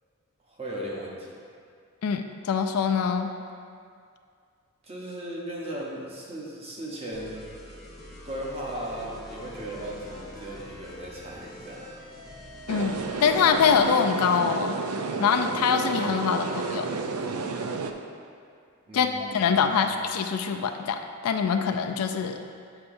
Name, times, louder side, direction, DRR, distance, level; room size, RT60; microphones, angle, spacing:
voice 1, 0.5-1.3 4.8-7.4 8.2-11.9 18.9-19.9, right 1 dB, 25° right, -4 dB, 1.0 m, -37 dB
voice 2, 2.0-3.3 12.7-14.8 15.2-16.9 18.9-22.4, left 6 dB, 80° left, 6 dB, 0.4 m, -24 dB
sound 1, 7.1-14.0, equal, ahead, 0.9 m, -45 dB
sound 2, 12.7-17.9, right 4 dB, 75° right, 0.4 m, -31 dB
7.9 x 5.8 x 2.6 m, 2.3 s
head